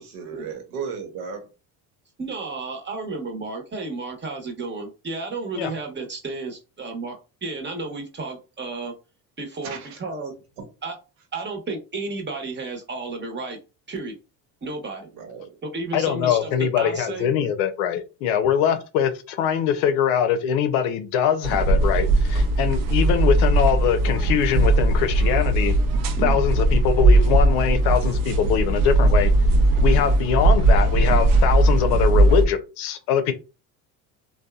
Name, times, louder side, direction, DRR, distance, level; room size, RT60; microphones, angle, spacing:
voice 1, 0.0-1.5 9.6-10.0 10.6-10.7 15.1-15.5, right 6 dB, 85° right, 1.0 m, -35 dB
voice 2, 2.2-8.9 9.4-10.3 10.8-11.0 11.3-13.6 13.9-14.1 14.6-15.1 15.6-17.3 26.2-26.4, right 3 dB, 25° right, 0.9 m, -32 dB
voice 3, 15.9-25.7 26.2-29.3 29.8-33.3, left 8 dB, 80° left, 0.6 m, -23 dB
sound 1, 21.4-32.5, right 2 dB, 50° right, 0.6 m, -18 dB
2.7 x 2.2 x 2.2 m
supercardioid pair, 90°, 44 cm